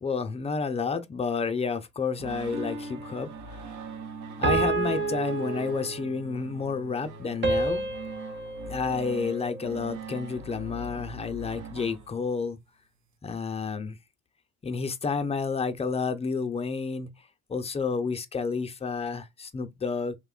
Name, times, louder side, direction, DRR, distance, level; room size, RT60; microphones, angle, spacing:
voice 1, 0.0-3.6 4.4-7.9 8.7-12.6 13.2-14.0 14.6-17.1 17.5-20.2, left 5 dB, 20° left, 0.4 m, -30 dB
sound 1, 2.2-12.5, right 3 dB, 75° right, 0.7 m, -42 dB
sound 2, 2.5-3.2 4.4-6.2 7.4-9.8, right 3 dB, 40° right, 0.8 m, -30 dB
3.0 x 2.1 x 2.3 m
cardioid pair, 90°, 30 cm